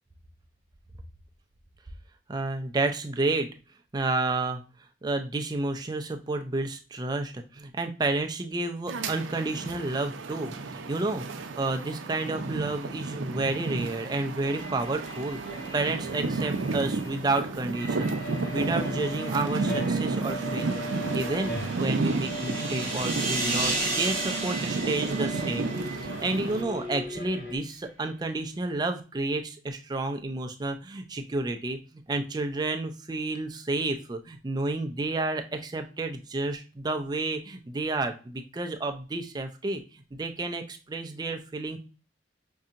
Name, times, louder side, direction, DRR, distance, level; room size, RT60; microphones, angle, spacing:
voice 1, 2.3-3.5 3.9-4.6 5.0-18.1 18.5-21.5 21.8-41.8, right 2 dB, 20° right, 5 dB, 0.4 m, -31 dB
sound 1, 8.9-26.6, right 3 dB, 90° right, 0.5 m, -32 dB
sound 2, 14.4-27.6, equal, 70° left, 1.3 m, -39 dB
sound 3, 20.8-26.4, right 2 dB, 5° left, 1.2 m, -33 dB
5.3 x 2.7 x 2.5 m, 0.35 s
head